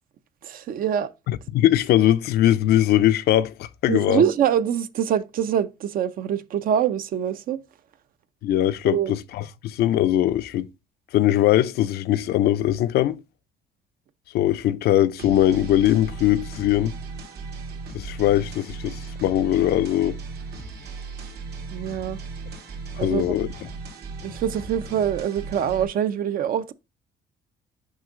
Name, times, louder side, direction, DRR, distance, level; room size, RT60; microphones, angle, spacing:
voice 1, 0.4-1.1 3.9-7.6 8.8-9.1 21.7-22.2 23.0-23.4 24.2-26.7, right 9 dB, 55° right, 0.7 m, -24 dB
voice 2, 1.3-4.2 8.4-10.7 11.1-13.2 14.3-16.9 17.9-20.2 23.0-23.5, left 13 dB, 70° left, 0.5 m, -21 dB
sound 1, 15.2-25.8, right 4 dB, 75° right, 2.2 m, -37 dB
6.4 x 5.3 x 3.7 m
cardioid pair, 110°, 17 cm